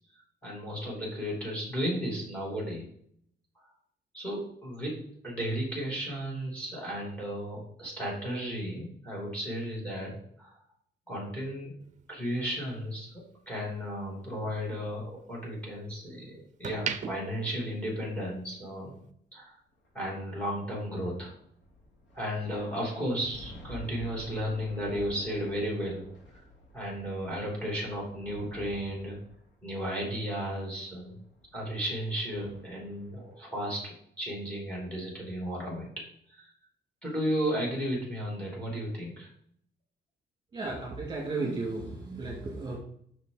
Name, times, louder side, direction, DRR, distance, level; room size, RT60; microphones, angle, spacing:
voice 1, 0.4-2.8 4.1-5.0 5.2-10.6 11.1-11.7 12.1-19.0 19.3-19.6 19.9-21.3 22.1-26.0 26.7-29.2 29.6-31.2 31.5-33.8 34.2-35.9 36.3-36.5 37.0-39.3, equal, 5° left, -2 dB, 2.8 m, -34 dB
sound 1, 11.8-14.1 14.5-16.0 16.4-18.5 18.8-19.1, right 8 dB, 40° right, 0.6 m, -40 dB
sound 2, 19.7-33.3, left 1 dB, 90° left, 2.4 m, -51 dB
voice 2, 40.5-42.8, right 3 dB, 25° right, -3 dB, 2.4 m, -34 dB
6.6 x 6.3 x 5.0 m, 0.66 s
wide cardioid pair, 175°, 19 cm